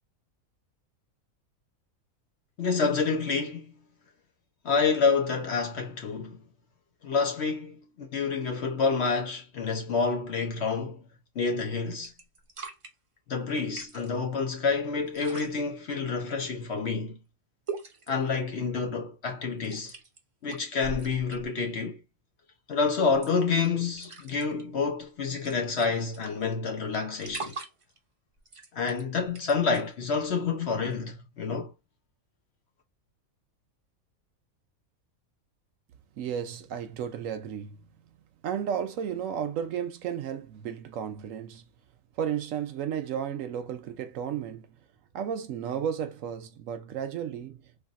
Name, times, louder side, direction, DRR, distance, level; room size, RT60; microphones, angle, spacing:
voice 1, 2.6-3.7 4.6-6.4 7.0-11.0 11.3-12.1 13.3-17.2 18.1-19.9 20.4-22.0 22.7-27.6 28.7-31.7, left 4 dB, 55° left, 1.0 m, -28 dB
sound 1, 11.4-11.7 12.0-12.9 13.6-14.2 15.1-15.5 17.7-18.3 19.6-20.2 20.5-21.6 23.1-23.7 23.9-24.6 25.0-25.1 25.3-26.5 26.9-28.0 28.4-29.9 30.8-30.9, right 4 dB, 45° right, 0.4 m, -41 dB
voice 2, 36.2-37.8 38.4-41.7 42.2-44.7 45.1-47.6, right 8 dB, 70° right, 0.9 m, -33 dB
3.4 x 2.5 x 2.4 m
omnidirectional pair, 1.5 m